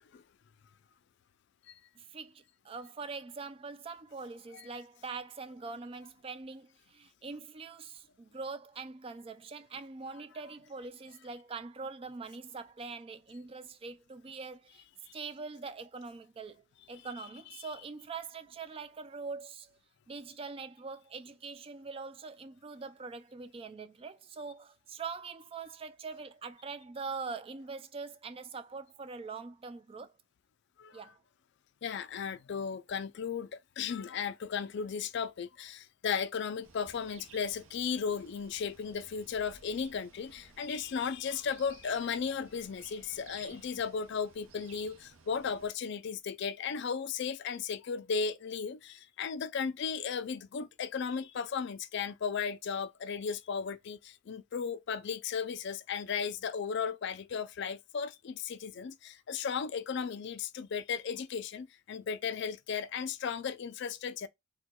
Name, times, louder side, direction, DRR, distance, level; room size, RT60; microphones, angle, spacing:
voice 1, 2.0-14.8 15.1-19.8 20.1-30.1 30.9-31.2 43.5-43.6, right 4 dB, 25° right, 0.3 m, -43 dB
voice 2, 30.8-31.1 31.8-64.3, left 6 dB, 55° left, 0.4 m, -35 dB
sound 1, 36.6-45.7, right 5 dB, 85° right, 0.7 m, -57 dB
4.4 x 2.2 x 2.2 m
head